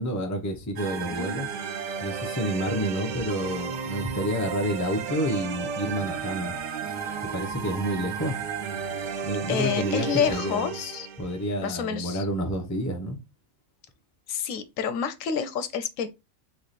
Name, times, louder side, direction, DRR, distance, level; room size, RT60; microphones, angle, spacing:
voice 1, 0.0-1.5 2.0-6.6 7.2-8.4 9.2-10.7 11.2-13.2, equal, 15° left, 0.6 m, -29 dB
sound 1, 0.8-11.5, right 6 dB, 80° right, 0.4 m, -33 dB
voice 2, 9.5-11.1 11.6-12.3 14.3-16.1, left 7 dB, 80° left, 1.0 m, -28 dB
3.6 x 3.2 x 4.0 m
omnidirectional pair, 1.4 m